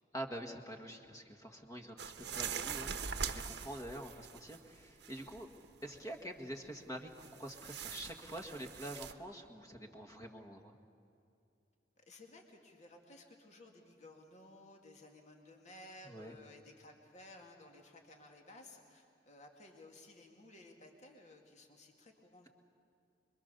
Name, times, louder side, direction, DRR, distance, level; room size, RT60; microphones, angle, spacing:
voice 1, 0.1-2.9 3.2-5.5 5.8-10.7 16.1-16.3, right 1 dB, 20° left, 3 dB, 1.8 m, -46 dB
sound 1, 2.0-4.7 5.0-5.7 7.2-9.1, right 6 dB, 65° right, 1.1 m, -42 dB
voice 2, 12.0-22.5, left 2 dB, 40° left, 2 dB, 2.4 m, -57 dB
26.5 x 23.5 x 6.9 m, 2.6 s
head